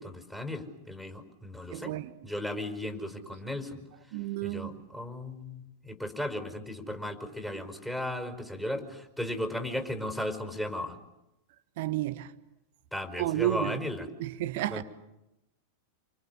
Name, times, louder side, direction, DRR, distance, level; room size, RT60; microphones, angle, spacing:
voice 1, 0.0-1.9 2.2-3.8 4.4-10.9 12.9-14.1 14.7-14.8, left 1 dB, 5° left, 5.1 m, -36 dB
voice 2, 1.7-2.1 4.1-4.8 11.8-12.3 13.2-13.8 14.2-14.8, right 14 dB, 50° right, 1.4 m, -31 dB
28.5 x 27.0 x 6.9 m
figure-of-eight pair, 90°, 0 cm